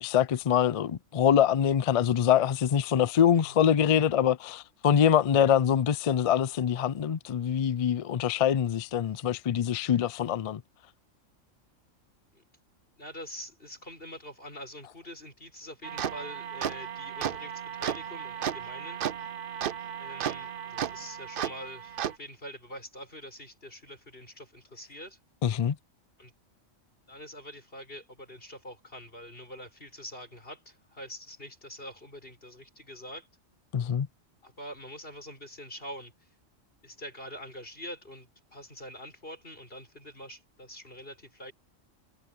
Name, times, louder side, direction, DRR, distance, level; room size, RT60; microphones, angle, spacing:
voice 1, 0.0-10.6 25.4-25.8 33.7-34.1, left 9 dB, 70° left, 0.3 m, -24 dB
voice 2, 13.0-19.0 20.0-25.2 26.2-26.3 27.1-33.3 34.4-36.1 36.8-41.5, equal, 45° left, 6.7 m, -45 dB
sound 1, 15.8-22.1, right 9 dB, 55° right, 0.7 m, -34 dB
omnidirectional pair, 1.3 m